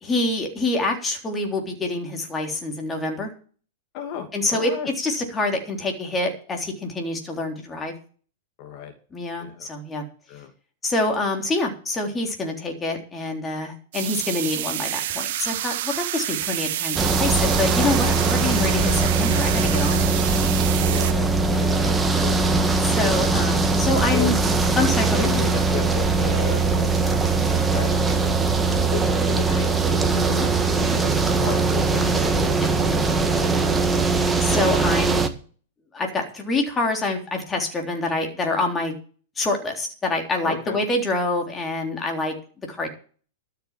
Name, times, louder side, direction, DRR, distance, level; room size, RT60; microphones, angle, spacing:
voice 1, 0.0-3.3 4.3-7.9 9.1-10.0 10.8-20.1 21.5-21.6 22.9-24.4 24.8-25.3 30.0-31.0 34.4-35.2 35.9-38.9 39.4-42.4 42.7-42.9, left 2 dB, 15° left, 2 dB, 3.5 m, -26 dB
voice 2, 3.9-4.9 8.6-8.9 9.4-9.7 10.3-10.5 20.8-22.4 24.1-24.3 25.1-28.4 28.7-30.5 30.8-34.0 40.4-40.8, left 8 dB, 45° left, 4 dB, 2.5 m, -35 dB
sound 1, 13.9-21.1, right 13 dB, 65° right, 1.3 m, -28 dB
sound 2, 17.0-35.3, right 4 dB, 10° right, 1.5 m, -21 dB
12.5 x 6.9 x 7.5 m, 0.41 s
hypercardioid pair, 135°, 0 cm